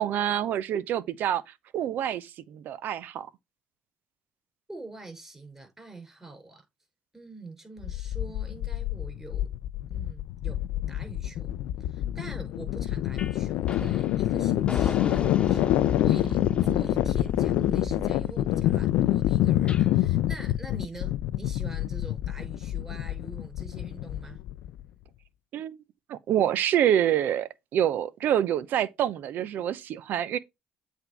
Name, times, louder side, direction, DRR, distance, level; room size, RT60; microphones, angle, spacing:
voice 1, 0.0-1.4 1.7-3.3 25.5-25.8 26.1-30.4, right 10 dB, 65° right, 0.6 m, -26 dB
voice 2, 4.7-6.6 7.1-9.4 9.9-10.6 10.9-11.5 11.8-24.4, right 3 dB, 15° right, 5.3 m, -45 dB
sound 1, 7.8-24.8, left 13 dB, 75° left, 0.5 m, -27 dB
sound 2, 13.2-13.4 13.7-19.9, left 4 dB, 30° left, 1.1 m, -36 dB
8.0 x 3.7 x 4.6 m
hypercardioid pair, 60°, 3 cm